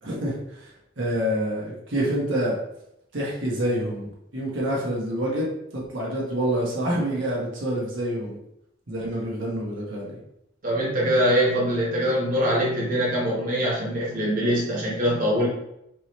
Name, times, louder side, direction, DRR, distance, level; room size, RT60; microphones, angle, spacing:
voice 1, 0.0-0.3 1.0-2.6 3.1-5.5 5.7-8.4 8.9-10.2, right 1 dB, 70° right, -4 dB, 1.2 m, -27 dB
voice 2, 10.6-15.5, equal, 45° right, -5 dB, 1.1 m, -23 dB
4.6 x 2.9 x 3.2 m, 0.80 s
head